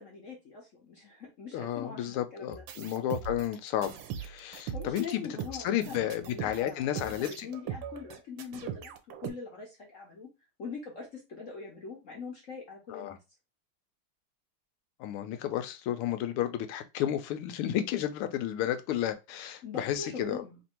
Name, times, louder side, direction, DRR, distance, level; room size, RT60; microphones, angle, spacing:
voice 1, 0.0-2.6 4.7-8.9 9.2-10.3 10.6-13.2 19.6-20.6, left 5 dB, 55° left, 0.9 m, -42 dB
voice 2, 1.5-3.9 4.2-5.3 5.6-7.5 12.9-13.2 15.0-20.4, left 11 dB, 85° left, 1.5 m, -32 dB
sound 1, 2.5-9.3, right 8 dB, 70° right, 1.3 m, -40 dB
3.6 x 2.6 x 4.3 m
omnidirectional pair, 2.4 m